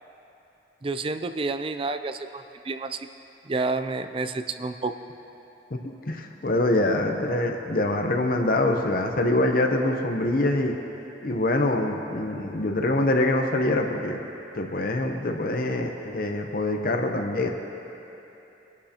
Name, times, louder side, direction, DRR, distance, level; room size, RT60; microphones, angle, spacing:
voice 1, 0.8-3.1 3.4-4.9, right 3 dB, 30° right, 9 dB, 0.4 m, -29 dB
voice 2, 5.7-10.8 11.2-14.2 14.5-17.5, left 1 dB, 55° left, 3 dB, 0.8 m, -24 dB
23.0 x 12.0 x 2.9 m, 3.0 s
head